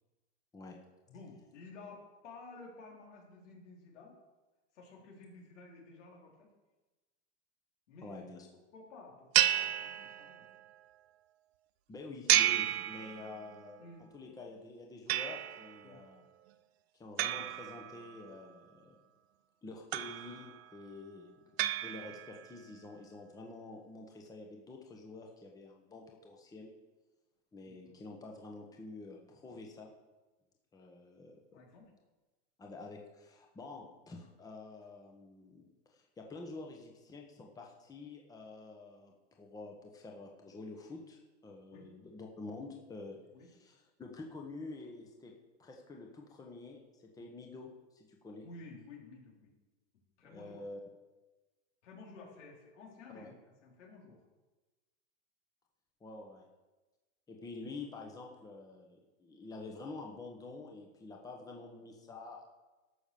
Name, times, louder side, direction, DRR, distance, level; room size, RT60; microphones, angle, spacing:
voice 1, 1.1-4.2 4.7-6.3 7.9-8.3 8.7-10.5 13.8-14.0 15.8-16.0 27.7-28.0 31.5-31.9 41.7-41.8 43.3-43.5 47.2-47.3 48.4-49.5 50.2-50.6 51.8-54.2, left 3 dB, 85° left, -1 dB, 4.0 m, -53 dB
voice 2, 8.0-8.5 11.9-13.8 14.1-16.3 16.9-18.9 19.6-21.4 21.8-26.7 27.5-29.9 30.7-31.6 32.6-35.6 35.9-45.3 45.6-48.5 50.2-50.8 53.1-53.3 56.0-56.4 57.3-62.4, left 3 dB, 10° left, 1 dB, 1.2 m, -48 dB
sound 1, 9.3-10.6 12.3-13.6 15.1-15.8 17.2-18.3 19.9-20.6 21.6-22.5, right 14 dB, 60° right, 0.7 m, -32 dB
13.0 x 6.1 x 7.0 m, 1.2 s
supercardioid pair, 145°, 35 cm